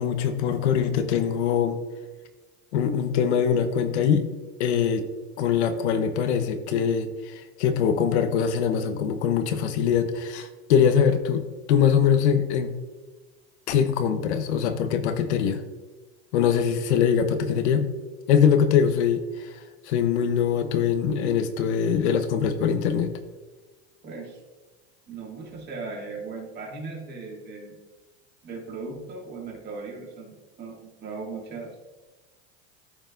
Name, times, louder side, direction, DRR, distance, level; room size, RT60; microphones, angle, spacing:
voice 1, 0.0-1.8 2.7-4.3 4.6-5.1 5.4-12.7 13.7-15.6 16.3-17.9 18.3-19.5 19.9-23.1, left 7 dB, 90° left, 8 dB, 1.0 m, -23 dB
voice 2, 24.0-24.4 25.1-27.8 28.4-31.8, right 4 dB, 30° right, -2 dB, 2.4 m, -38 dB
14.0 x 5.5 x 2.6 m, 1.2 s
supercardioid pair, 140°, 33 cm